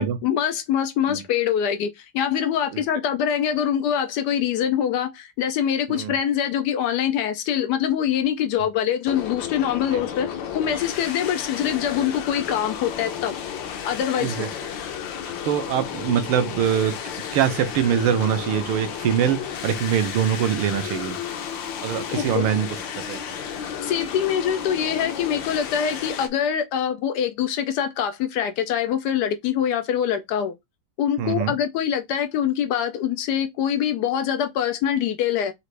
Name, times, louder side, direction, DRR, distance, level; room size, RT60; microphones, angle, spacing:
voice 1, 0.0-13.3 13.8-14.4 22.1-22.4 23.8-30.5 31.0-35.5, left 9 dB, 90° left, 0.9 m, -24 dB
sound 1, 9.1-26.3, left 8 dB, 70° left, 1.4 m, -33 dB
voice 2, 15.4-16.9 17.3-21.2 21.8-22.7 23.0-23.2 31.2-31.5, right 9 dB, 80° right, 1.7 m, -23 dB
6.1 x 2.5 x 3.2 m
omnidirectional pair, 2.3 m